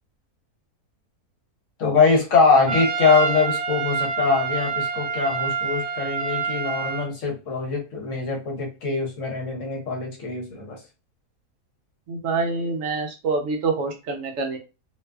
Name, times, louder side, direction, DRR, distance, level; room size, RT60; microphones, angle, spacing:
voice 1, 1.8-10.8, left 4 dB, 60° left, 1 dB, 1.0 m, -22 dB
Trumpet, 2.7-7.1, right 5 dB, 30° right, 0.9 m, -27 dB
voice 2, 12.1-14.6, right 4 dB, 70° right, 3 dB, 0.9 m, -26 dB
2.6 x 2.3 x 2.2 m, 0.29 s
omnidirectional pair, 1.6 m